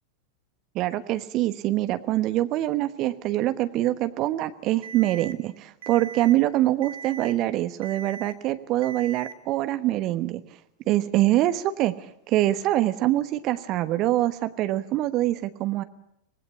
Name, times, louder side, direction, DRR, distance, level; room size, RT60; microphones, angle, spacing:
voice 1, 0.7-10.4 10.9-15.8, right 15 dB, 35° right, 12 dB, 1.1 m, -24 dB
Alarm, 4.8-5.3 5.8-6.3 6.8-7.3 7.8-8.3 8.8-9.3, right 6 dB, 60° right, 2.0 m, -39 dB
25.5 x 19.5 x 8.4 m, 0.81 s
figure-of-eight pair, 90°, 0 cm